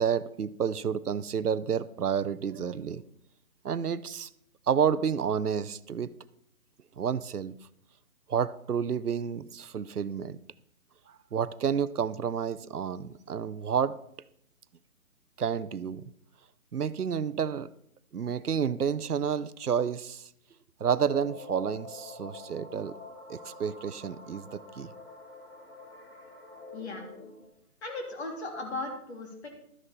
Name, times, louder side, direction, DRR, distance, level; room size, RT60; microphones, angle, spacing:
voice 1, 0.0-3.0 3.6-4.3 4.7-6.1 7.0-7.5 8.3-10.4 11.3-14.0 15.4-16.0 16.7-17.7 18.1-20.3 20.8-23.0 23.3-24.9, right 7 dB, 90° right, 0.7 m, -30 dB
sound 1, 20.8-27.5, left 2 dB, 10° left, 3.8 m, -46 dB
voice 2, 26.7-27.1 27.8-29.5, left 2 dB, 45° left, 3.4 m, -37 dB
13.0 x 10.0 x 4.3 m
figure-of-eight pair, 155°, 44 cm